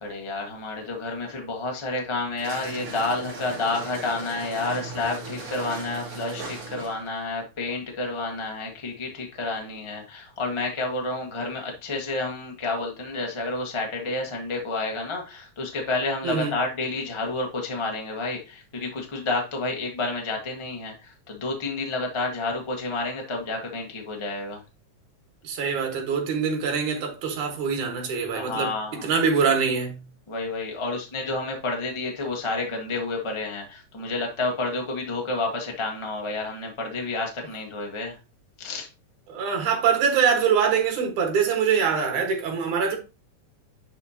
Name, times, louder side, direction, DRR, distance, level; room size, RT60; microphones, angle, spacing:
voice 1, 0.0-24.6 28.3-29.1 30.3-38.2 38.6-38.9, left 3 dB, 40° left, 0.4 m, -30 dB
sound 1, 2.4-7.1, right 3 dB, 55° right, 3.2 m, -37 dB
voice 2, 16.2-16.5 25.4-28.7 29.0-30.0 39.3-43.0, right 6 dB, 70° right, 3.1 m, -24 dB
10.5 x 4.5 x 2.9 m
omnidirectional pair, 3.6 m